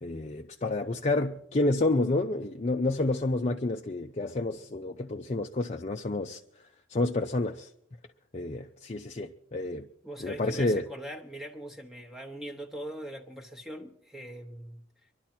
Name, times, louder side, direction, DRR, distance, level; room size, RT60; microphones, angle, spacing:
voice 1, 0.0-6.4 6.9-7.7 8.3-9.9 10.2-10.9, left 2 dB, 35° left, 0.6 m, -29 dB
voice 2, 10.0-15.1, right 1 dB, ahead, 1.0 m, -42 dB
24.5 x 12.0 x 4.4 m
head